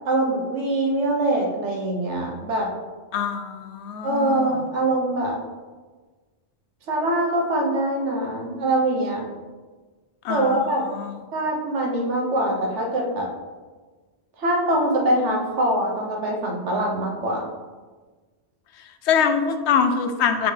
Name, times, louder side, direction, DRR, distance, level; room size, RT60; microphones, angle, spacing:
voice 1, 0.1-2.7 4.0-5.4 6.9-9.3 10.3-10.8 11.3-13.3 14.4-17.4, right 1 dB, 80° right, 0 dB, 1.3 m, -23 dB
voice 2, 3.1-4.6 10.2-11.2 19.0-20.5, left 6 dB, 75° left, 7 dB, 0.9 m, -24 dB
6.4 x 4.4 x 3.3 m, 1.3 s
omnidirectional pair, 1.2 m